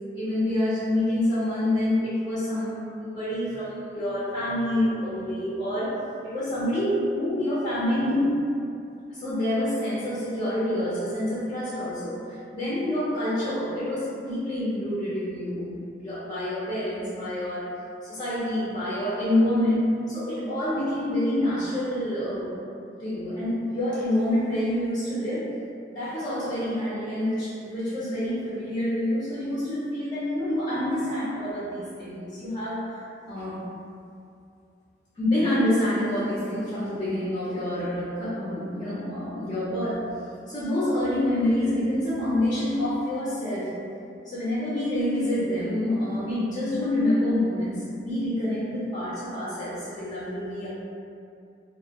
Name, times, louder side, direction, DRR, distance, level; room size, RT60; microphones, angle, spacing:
voice 1, 0.1-8.4 9.1-17.8 18.0-22.6 23.0-25.6 25.9-33.7 35.2-40.2 40.5-43.8 44.2-50.7, left 1 dB, 25° left, -11 dB, 0.6 m, -27 dB
2.2 x 2.1 x 2.9 m, 2.4 s
head